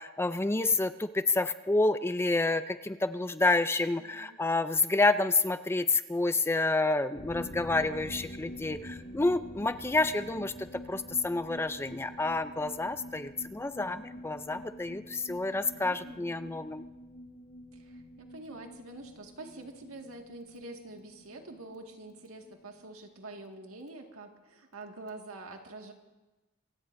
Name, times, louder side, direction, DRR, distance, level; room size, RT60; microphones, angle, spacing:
voice 1, 0.0-10.5 10.9-16.8, left 2 dB, 10° left, 11 dB, 0.4 m, -29 dB
voice 2, 3.9-4.4 14.8-15.0 15.7-16.6 17.7-25.9, right 2 dB, 80° right, 2 dB, 1.9 m, -46 dB
sound 1, 7.1-22.5 22.8-22.9 23.2-23.3, equal, 50° left, 4.3 m, -47 dB
26.5 x 17.0 x 2.6 m, 1.1 s
head